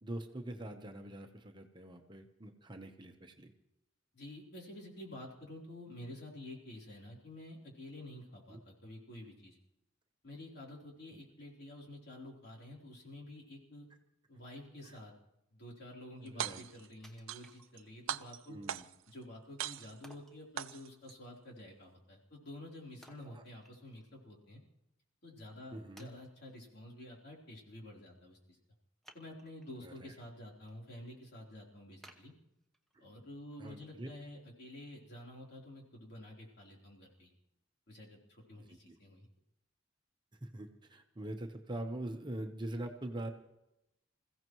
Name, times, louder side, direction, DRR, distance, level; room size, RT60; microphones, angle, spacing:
voice 1, 0.0-3.5 8.5-8.6 14.9-15.0 16.2-16.6 18.5-18.8 23.2-23.4 25.7-26.1 29.8-30.1 33.6-34.1 38.6-38.7 40.4-43.3, right 1 dB, 25° right, 4 dB, 1.0 m, -43 dB
voice 2, 4.1-9.6 10.2-13.9 14.3-15.1 15.5-18.6 19.1-24.6 25.2-28.6 29.1-32.3 33.0-37.3 37.9-39.3, left 1 dB, 55° left, -2 dB, 3.8 m, -50 dB
sound 1, 16.3-16.9 17.3-17.8 18.1-19.1 19.6-20.1 20.6-21.1, right 9 dB, 85° right, 0.5 m, -40 dB
Wood, 17.0-18.1 18.6-18.7 20.0-20.4 23.0-24.1 24.5-24.6 25.3-25.4 26.0-26.6 29.0-29.8 30.3-30.7 31.1-31.2 32.0-33.0 33.5-33.6, right 1 dB, ahead, 1.1 m, -60 dB
27.0 x 15.5 x 3.1 m, 0.86 s
head